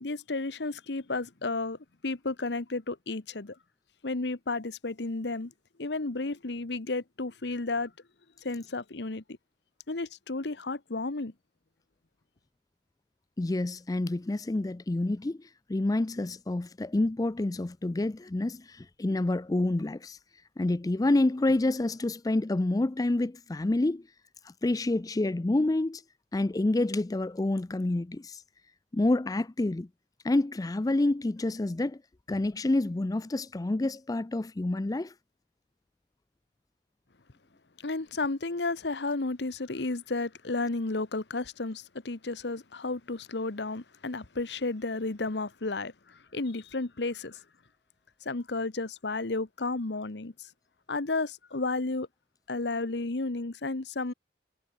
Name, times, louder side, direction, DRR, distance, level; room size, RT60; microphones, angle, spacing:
voice 1, 0.0-3.6 4.0-5.5 5.8-7.9 8.4-9.2 9.9-11.3 37.8-47.4 48.2-50.5 50.9-52.1 52.5-54.1, left 3 dB, 75° left, 1.1 m, -32 dB
voice 2, 13.4-20.2 20.6-24.0 24.4-26.0 26.3-28.4 28.9-29.9 30.2-32.0 32.3-35.1, left 2 dB, 20° left, 0.4 m, -28 dB
head